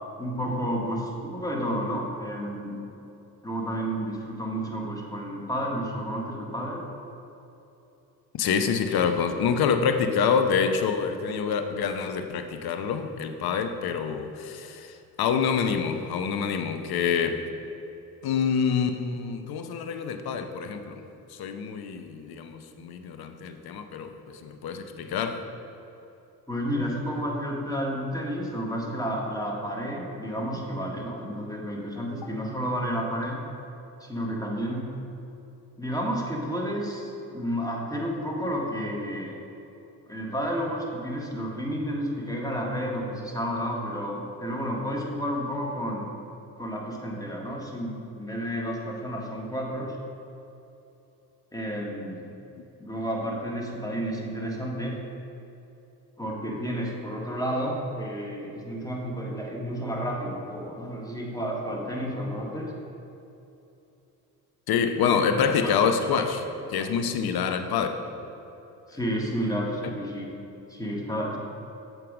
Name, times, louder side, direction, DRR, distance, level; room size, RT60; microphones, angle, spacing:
voice 1, 0.2-2.8 3.4-6.8 26.5-33.4 34.0-34.9 35.8-39.4 40.1-46.1 46.6-50.0 51.5-52.3 52.8-55.0 56.2-62.7 65.6-65.9 66.8-66.9 68.9-70.3 70.7-71.4, equal, 5° left, -1 dB, 1.7 m, -31 dB
voice 2, 8.3-17.4 18.2-21.0 21.4-24.1 24.4-25.4 64.7-66.4 66.7-67.9, left 6 dB, 50° left, 8 dB, 0.8 m, -26 dB
7.6 x 4.6 x 5.1 m, 2.9 s
hypercardioid pair, 60°, 47 cm